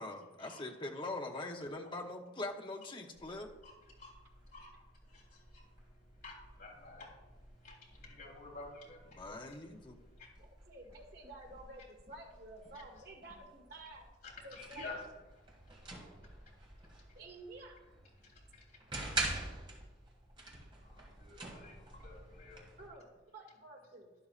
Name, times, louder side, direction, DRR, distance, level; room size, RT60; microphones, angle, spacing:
voice 1, 0.0-3.5 9.2-10.0, left 2 dB, 25° left, 3 dB, 0.8 m, -42 dB
sound 1, 3.1-22.9, right 2 dB, 25° right, 1.8 m, -47 dB
voice 2, 3.6-4.2 4.5-4.8 5.1-5.6 6.0-7.3 7.6-9.7 10.2-10.3 14.2-15.0 16.2-16.3 18.2-18.6 20.8-22.8, left 3 dB, 50° left, -4 dB, 3.2 m, -51 dB
voice 3, 10.4-14.0 14.4-15.1 17.1-17.8 22.8-24.2, right 2 dB, 55° right, 0 dB, 1.9 m, -52 dB
12.0 x 11.0 x 2.4 m, 1.1 s
head